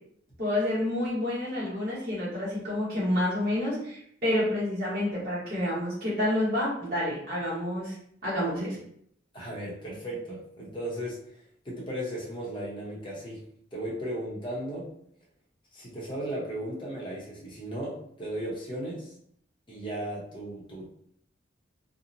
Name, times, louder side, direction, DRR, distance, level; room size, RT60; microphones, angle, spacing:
voice 1, 0.4-7.9 8.2-8.8, left 1 dB, 50° right, -9 dB, 1.1 m, -29 dB
voice 2, 9.3-11.2 11.6-13.4 13.7-14.9 15.7-19.1 19.7-20.9, right 1 dB, 25° left, -5 dB, 0.7 m, -36 dB
2.8 x 2.1 x 2.5 m, 0.68 s
head